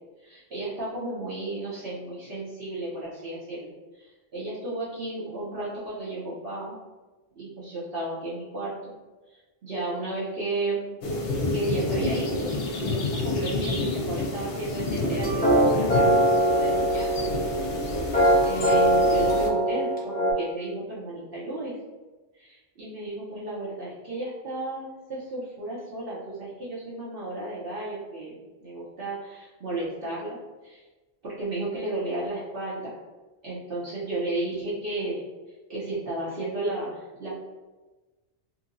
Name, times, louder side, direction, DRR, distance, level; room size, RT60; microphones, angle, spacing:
voice 1, 0.2-6.8 7.4-8.9 9.3-11.0 11.5-17.3 17.8-17.9 18.4-21.8 22.3-30.4 30.7-30.8 31.2-32.9 33.4-35.2 35.7-37.4, right 2 dB, 60° right, -8 dB, 0.9 m, -33 dB
sound 1, 11.0-19.5, left 2 dB, 65° left, 0.8 m, -29 dB
sound 2, 15.0-20.3, right 1 dB, 10° left, 0.7 m, -22 dB
2.9 x 2.7 x 2.5 m, 1.2 s
omnidirectional pair, 1.1 m